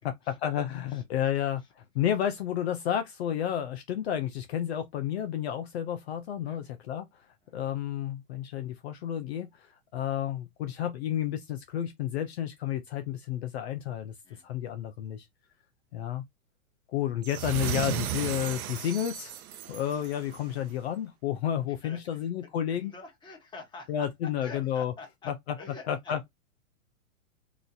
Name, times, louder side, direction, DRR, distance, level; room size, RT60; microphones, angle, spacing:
voice 1, 0.0-14.1 14.4-15.3 15.9-16.3 16.9-19.4 19.7-22.9 23.9-24.9 25.3-25.4 25.9-26.2, left 10 dB, 50° left, 0.5 m, -31 dB
sound 1, 17.2-20.5, right 11 dB, 90° right, 0.6 m, -35 dB
voice 2, 21.8-22.3 22.7-26.3, left 3 dB, 10° left, 1.2 m, -47 dB
2.9 x 2.4 x 3.8 m
hypercardioid pair, 140°, 42 cm